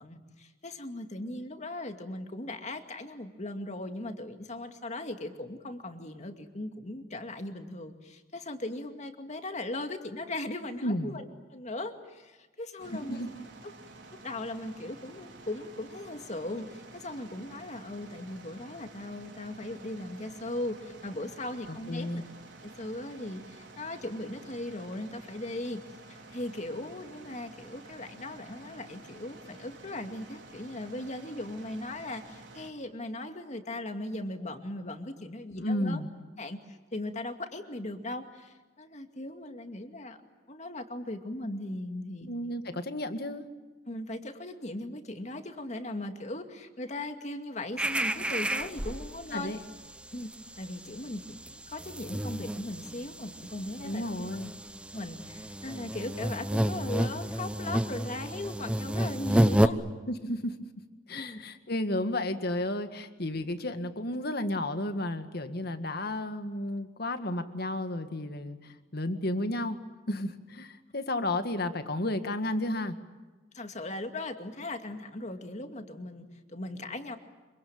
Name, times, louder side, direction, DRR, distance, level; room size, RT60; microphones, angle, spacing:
voice 1, 0.0-11.3 11.5-13.3 14.1-22.2 22.6-25.8 26.1-36.0 36.4-40.2 40.5-42.3 43.9-49.5 50.1-50.3 50.6-54.0 54.9-59.8 61.1-61.4 73.5-77.2, left 1 dB, 40° left, 6 dB, 2.3 m, -38 dB
voice 2, 10.8-11.2 12.9-13.3 21.7-22.2 35.6-36.1 42.3-43.5 49.3-49.6 53.8-54.5 60.1-60.6 61.1-69.8 70.1-73.0, left 1 dB, 60° left, 8 dB, 1.9 m, -32 dB
sound 1, 12.8-32.7, right 2 dB, 80° right, 4.2 m, -50 dB
sound 2, 47.8-49.3 49.7-49.9 50.2-59.7, right 1 dB, 5° right, 0.8 m, -30 dB
26.0 x 24.5 x 8.8 m, 1.2 s
head